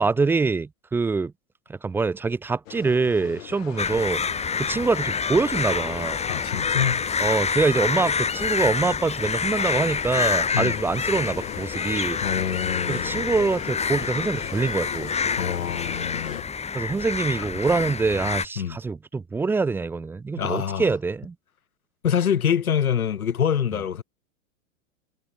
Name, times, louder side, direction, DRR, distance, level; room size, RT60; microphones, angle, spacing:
voice 1, 0.0-1.3 1.7-4.2 4.6-6.2 7.2-12.2 12.9-15.1 16.7-21.3, right 4 dB, 5° right, 0.4 m, -25 dB
sound 1, 2.7-16.4, left 15 dB, 65° left, 2.9 m, -38 dB
sound 2, 3.8-18.5, left 5 dB, 15° left, 3.9 m, -27 dB
voice 2, 6.3-7.0 10.5-10.8 12.2-13.3 15.4-16.4 17.4-17.5 18.6-18.8 20.4-20.9 22.0-24.0, left 8 dB, 85° left, 2.4 m, -25 dB
hypercardioid pair, 110°, 42 cm